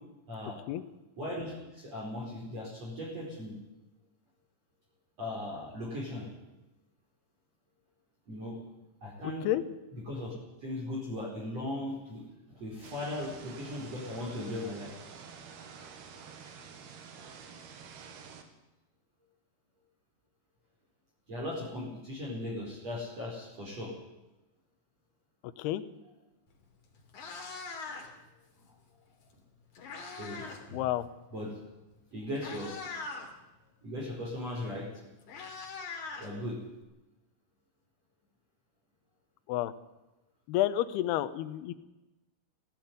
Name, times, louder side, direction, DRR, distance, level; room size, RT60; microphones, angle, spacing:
voice 1, 0.3-0.6 1.2-3.6 5.2-6.2 8.3-8.6 9.0-9.5 10.1-10.3 10.6-12.2 12.5-14.9 21.3-23.9 30.2-30.8 31.3-31.6 32.1-32.7 33.8-34.9 36.2-36.6, left 1 dB, 35° right, -3 dB, 5.6 m, -38 dB
sound 1, 12.8-18.4, right 6 dB, 60° right, 3.7 m, -49 dB
voice 2, 25.4-25.8 30.7-31.1 39.5-39.7 40.5-41.7, left 14 dB, 75° left, 11 dB, 2.6 m, -30 dB
Meow, 26.5-26.6 27.0-28.3 29.3-30.7 30.9-31.2 31.9-32.0 32.3-33.3 34.6-34.7 34.9-36.8, left 4 dB, 45° left, 4.0 m, -42 dB
17.0 x 16.0 x 9.6 m, 1.0 s
omnidirectional pair, 5.5 m